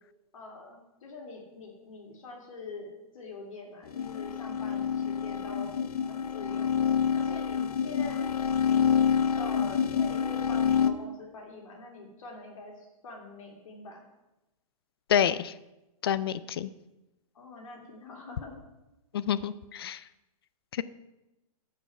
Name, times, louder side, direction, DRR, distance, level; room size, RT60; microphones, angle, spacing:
voice 1, 0.3-5.7 6.1-6.8 7.2-8.2 9.4-14.0 17.3-18.6, left 3 dB, 60° left, 1 dB, 2.3 m, -44 dB
sound 1, 3.9-10.9, left 7 dB, 80° left, 0.8 m, -27 dB
voice 2, 15.1-15.5 16.0-16.7 19.1-20.0 20.7-20.8, left 9 dB, 40° left, 16 dB, 0.4 m, -28 dB
14.0 x 4.8 x 5.8 m, 0.98 s
hypercardioid pair, 175°, 19 cm